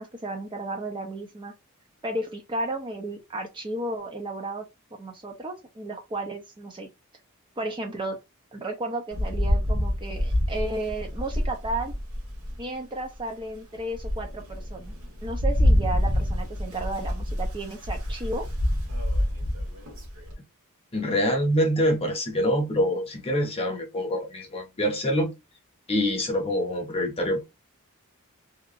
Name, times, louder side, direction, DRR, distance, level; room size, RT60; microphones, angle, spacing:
voice 1, 0.0-1.5 2.0-4.6 5.0-6.9 7.6-8.2 8.5-11.9 12.6-15.0 15.2-18.5, right 2 dB, 20° right, 0.5 m, -33 dB
Rain, 9.1-12.6 13.2-13.3 13.8-20.3, left 1 dB, 75° right, 1.1 m, -27 dB
voice 2, 20.9-25.3 25.9-27.4, equal, 25° left, 0.8 m, -25 dB
2.7 x 2.4 x 2.4 m
head